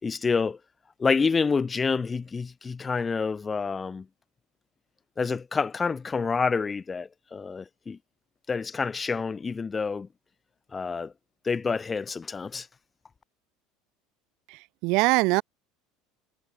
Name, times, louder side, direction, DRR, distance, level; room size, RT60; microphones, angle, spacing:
voice 1, 0.0-0.6 1.0-4.1 5.2-8.0 8.5-10.1 10.7-11.1 11.4-12.7, left 5 dB, 20° left, 0.5 m, -28 dB
voice 2, 14.5-15.4, right 25 dB, 65° right, 0.6 m, -23 dB
supercardioid pair, 125°, 0 cm